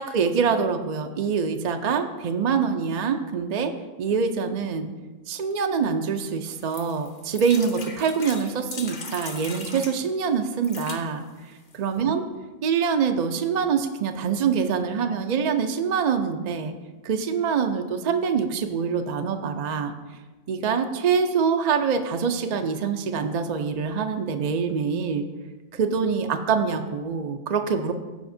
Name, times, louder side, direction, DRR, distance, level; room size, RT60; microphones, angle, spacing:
voice 1, 0.0-3.7 4.0-4.9 5.3-11.2 11.7-12.2 12.6-16.7 17.0-19.9 20.5-25.3 25.7-27.9, right 6 dB, 55° right, 6 dB, 0.4 m, -25 dB
sound 1, 6.5-10.0 10.5-11.0 11.7-11.8 12.0-12.1, left 4 dB, 45° left, 0.8 m, -39 dB
14.5 x 5.0 x 2.6 m, 1.3 s
omnidirectional pair, 1.3 m